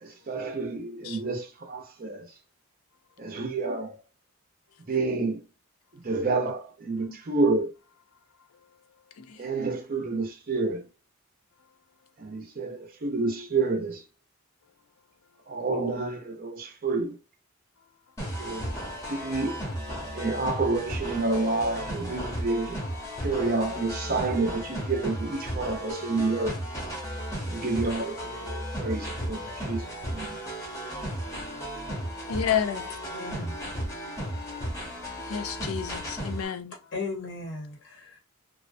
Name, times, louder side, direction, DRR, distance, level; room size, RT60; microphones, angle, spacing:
voice 1, 0.0-2.3 3.2-4.0 4.9-5.4 5.9-7.7 9.4-10.9 12.2-14.0 15.5-17.2 18.4-18.8 19.1-19.7 20.1-22.8 23.2-26.6 27.5-30.4, right 3 dB, 40° right, 0.5 m, -29 dB
sound 1, 18.2-36.5, equal, 15° left, 0.7 m, -35 dB
voice 2, 32.3-32.9 35.3-36.8, left 8 dB, 70° left, 0.4 m, -30 dB
voice 3, 32.8-33.6 36.9-38.2, left 3 dB, 55° left, 0.8 m, -37 dB
2.4 x 2.1 x 2.5 m
head